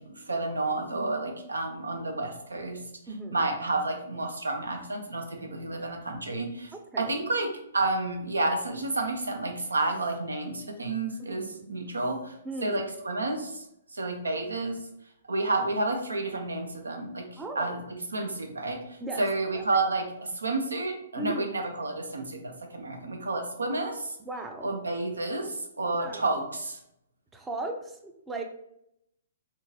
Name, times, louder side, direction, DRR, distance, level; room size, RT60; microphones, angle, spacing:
voice 1, 0.0-2.8 3.3-12.3 12.6-13.6 13.9-14.8 15.3-24.2 24.6-26.8, right 2 dB, 85° right, 4 dB, 0.7 m, -30 dB
voice 2, 11.4-11.9 12.4-12.8 17.4-17.8 18.2-18.3 19.0-19.2 19.5-19.6 21.2-21.5 23.7-23.8 24.2-24.7 26.0-26.2 27.3-28.4, right 2 dB, 10° right, 4 dB, 0.5 m, -36 dB
3.6 x 2.6 x 2.7 m, 0.79 s
hypercardioid pair, 125°, 0 cm